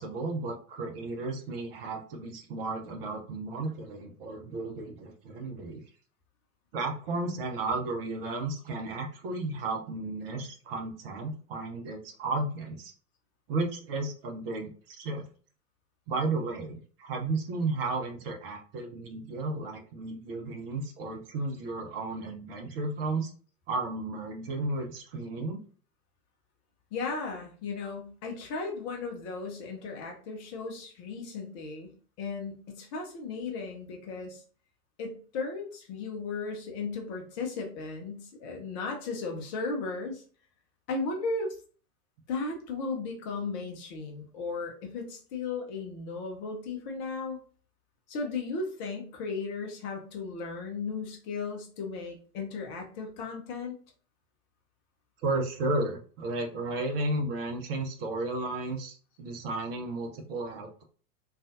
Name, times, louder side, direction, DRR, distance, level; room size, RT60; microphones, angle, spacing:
voice 1, 0.0-5.8 6.7-12.9 13.5-15.2 16.1-23.3 23.7-25.6 55.2-60.8, right 2 dB, 40° right, 3 dB, 0.7 m, -33 dB
voice 2, 26.9-31.9 32.2-34.4 35.0-40.2 40.9-41.5 42.3-47.4 48.1-53.7, left 4 dB, 30° left, 1 dB, 0.6 m, -36 dB
3.7 x 2.4 x 2.5 m, 0.42 s
figure-of-eight pair, 95°, 46 cm